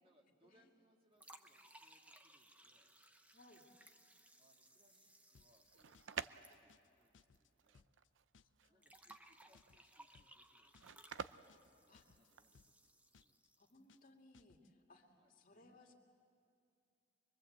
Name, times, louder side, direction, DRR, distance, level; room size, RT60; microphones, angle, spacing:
voice 1, 0.0-2.9 4.4-7.9 8.7-11.2 11.7-13.4 15.1-15.8, equal, 30° right, 1 dB, 1.9 m, -76 dB
sound 1, 1.2-7.3 7.6-7.7 8.8-13.8, right 1 dB, 10° right, 0.8 m, -64 dB
voice 2, 3.3-3.7 8.4-9.0 11.9-12.0 13.6-15.9, left 2 dB, 45° left, 1 dB, 2.5 m, -65 dB
sound 2, 5.3-5.7 5.9-6.3 6.5-6.9 7.1-7.5 7.7-8.1 8.3-8.7 8.9-9.3 9.5-9.9 10.1-10.5 10.7-11.1 11.3-11.7 11.9-12.3 12.5-12.9 13.1-13.5 13.7-14.1 14.3-14.7, left 5 dB, 80° left, 0.5 m, -68 dB
sound 3, 5.5-12.6, right 6 dB, 90° right, 0.6 m, -50 dB
24.5 x 22.5 x 8.0 m, 2.5 s
head